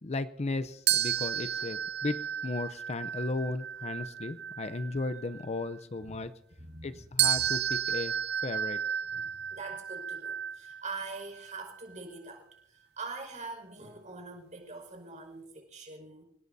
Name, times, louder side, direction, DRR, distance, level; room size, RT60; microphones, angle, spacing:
voice 1, 0.0-6.3 6.8-8.2 8.4-8.8, left 2 dB, 35° left, 12 dB, 0.6 m, -35 dB
sound 1, 0.9-5.7 7.2-11.8, right 9 dB, 60° right, 0.6 m, -33 dB
voice 2, 6.6-7.3 9.1-16.2, right 3 dB, 40° right, 3 dB, 5.3 m, -44 dB
29.0 x 17.5 x 2.7 m, 0.74 s
head